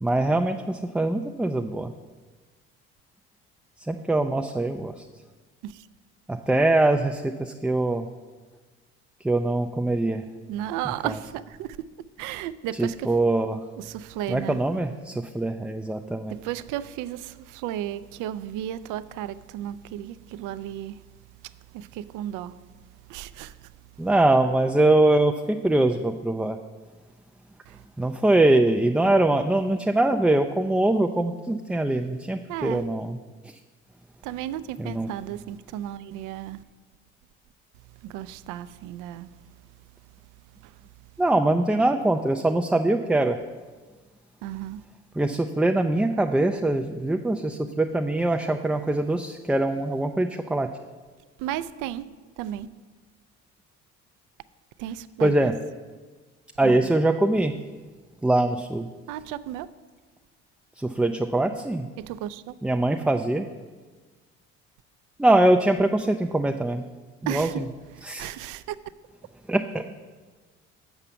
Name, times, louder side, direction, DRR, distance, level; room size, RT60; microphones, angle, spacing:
voice 1, 0.0-1.9 3.8-5.1 6.3-8.1 9.2-10.3 12.8-13.6 14.3-16.3 24.0-26.6 28.0-33.2 33.4-33.6 34.8-35.1 41.2-43.4 45.2-50.7 55.2-55.5 56.6-57.6 58.2-58.9 60.8-61.9 62.6-63.5 65.2-66.8 67.3-67.5 68.0-68.3 69.5-70.0, right 2 dB, 5° right, 0.3 m, -23 dB
voice 2, 10.5-11.8 12.2-13.2 13.8-14.6 16.3-21.1 21.4-22.6 23.1-23.7 27.7-27.8 32.5-32.8 34.2-36.6 38.0-39.4 40.6-40.8 44.4-44.8 51.4-52.0 52.4-52.7 54.8-55.5 56.6-56.9 59.1-59.7 62.0-62.5 67.3-67.6 67.9-68.8, right 12 dB, 70° right, 0.5 m, -34 dB
7.1 x 4.9 x 6.8 m
supercardioid pair, 70°, 32 cm